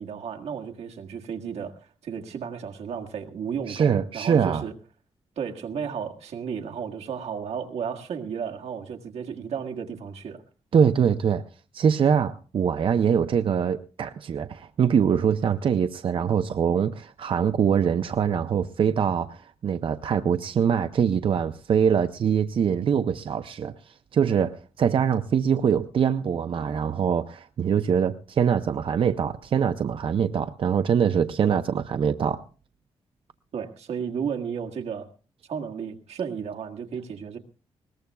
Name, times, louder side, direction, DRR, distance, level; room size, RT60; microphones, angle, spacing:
voice 1, 0.0-4.7 5.4-10.4 33.5-35.1 35.5-37.4, right 7 dB, 85° right, 1.7 m, -33 dB
voice 2, 3.7-4.6 10.7-11.4 11.7-32.4, right 7 dB, 55° right, 0.6 m, -23 dB
21.0 x 19.5 x 2.3 m
wide cardioid pair, 115°, 11 cm